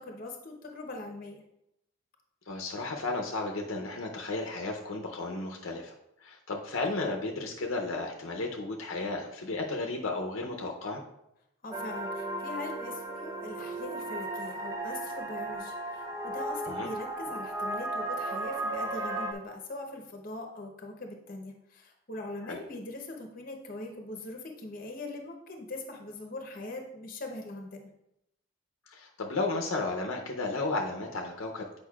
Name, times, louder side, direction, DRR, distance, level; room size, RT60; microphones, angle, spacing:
voice 1, 0.0-1.4 11.6-27.9, left 2 dB, 40° left, 3 dB, 0.9 m, -41 dB
voice 2, 2.5-5.9 6.2-11.0 16.7-16.9 22.4-22.6 28.9-31.8, left 2 dB, 70° left, 1 dB, 0.7 m, -33 dB
sound 1, 11.7-19.3, right 2 dB, 15° right, 0.5 m, -35 dB
8.3 x 5.2 x 2.4 m, 0.83 s
head